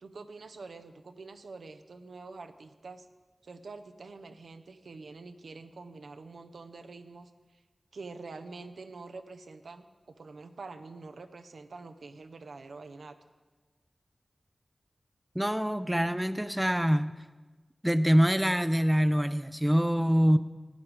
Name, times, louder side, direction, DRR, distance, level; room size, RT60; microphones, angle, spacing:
voice 1, 0.0-3.1 3.4-7.6 7.9-13.2, right 3 dB, 85° right, 8 dB, 0.6 m, -46 dB
voice 2, 15.3-17.1 17.8-20.4, equal, 10° right, 12 dB, 0.5 m, -25 dB
14.5 x 8.7 x 4.8 m, 1.3 s
cardioid pair, 40°, 0 cm